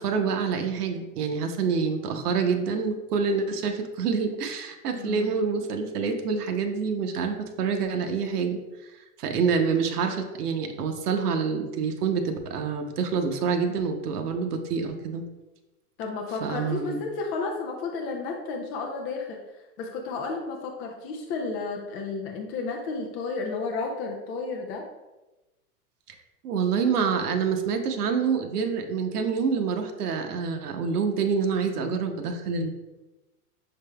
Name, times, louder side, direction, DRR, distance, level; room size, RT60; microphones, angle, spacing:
voice 1, 0.0-15.2 16.4-17.0 26.4-32.7, right 5 dB, 80° right, 5 dB, 0.8 m, -27 dB
voice 2, 4.9-5.4 16.0-24.9, left 4 dB, 30° left, 1 dB, 0.4 m, -32 dB
6.4 x 3.4 x 2.2 m, 1.1 s
hypercardioid pair, 115°, 46 cm